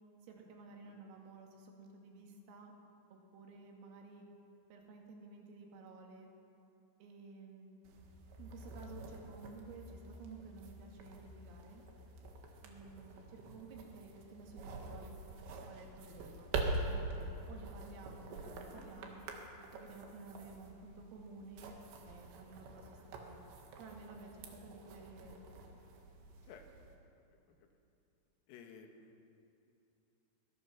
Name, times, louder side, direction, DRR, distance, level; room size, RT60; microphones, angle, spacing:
voice 1, 0.2-2.7 3.1-4.3 4.7-6.3 7.0-7.8 8.4-11.8 12.6-15.2 15.7-16.5 16.8-19.3 19.7-21.8 22.0-23.4 23.8-25.7, right 3 dB, 85° right, 1 dB, 5.0 m, -53 dB
sound 1, 7.8-27.0, right 2 dB, 70° right, 3.8 m, -45 dB
voice 2, 26.4-27.0 27.3-27.8 28.5-29.2, left 5 dB, 90° left, 4 dB, 4.4 m, -57 dB
23.0 x 20.5 x 5.9 m, 2.7 s
omnidirectional pair, 5.8 m